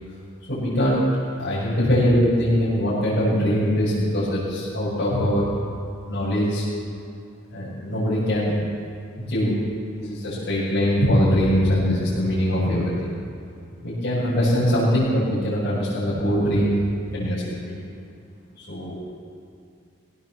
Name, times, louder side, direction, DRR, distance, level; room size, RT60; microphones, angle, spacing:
voice 1, 0.5-1.0 1.4-5.5 6.1-6.7 7.5-8.6 9.2-9.6 9.9-13.2 13.8-16.8 17.1-17.7 18.6-19.0, equal, 50° left, -11 dB, 6.9 m, -22 dB
22.5 x 18.0 x 7.4 m, 2.5 s
head